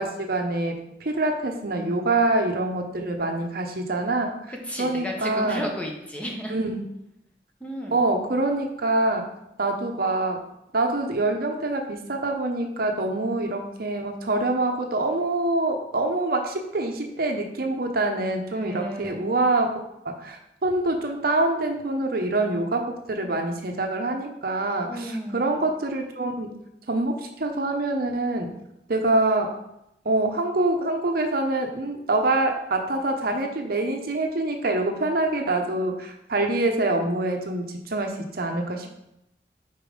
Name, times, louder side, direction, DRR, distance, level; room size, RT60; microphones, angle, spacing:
voice 1, 0.0-4.3 4.8-5.6 6.5-6.8 7.9-9.2 9.6-10.4 10.7-19.7 20.0-26.5 26.9-28.5 28.9-29.5 30.0-38.9, right 2 dB, 55° right, 4 dB, 0.8 m, -25 dB
voice 2, 4.5-6.6 7.6-8.0 18.5-19.5 24.9-25.6, equal, 10° left, 0 dB, 0.9 m, -33 dB
5.1 x 4.4 x 5.2 m, 0.83 s
head